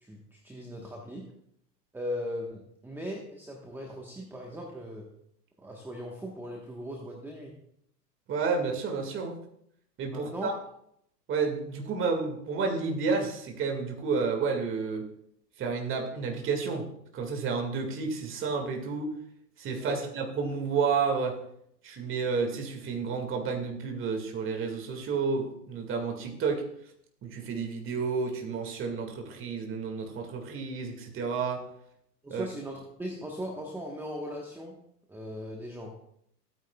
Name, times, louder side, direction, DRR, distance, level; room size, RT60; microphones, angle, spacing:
voice 1, 0.0-1.3 1.9-5.1 5.6-7.6 10.1-10.6 19.8-20.0 32.2-34.8 35.1-36.1, equal, 5° right, 0 dB, 1.2 m, -39 dB
voice 2, 8.3-9.4 10.0-10.5 11.3-15.1 15.6-16.9 17.1-19.1 19.6-21.4 21.8-26.6 27.2-31.6 32.3-32.4, right 5 dB, 25° right, 3 dB, 2.0 m, -30 dB
16.0 x 9.6 x 2.3 m, 0.70 s
hypercardioid pair, 110°, 50 cm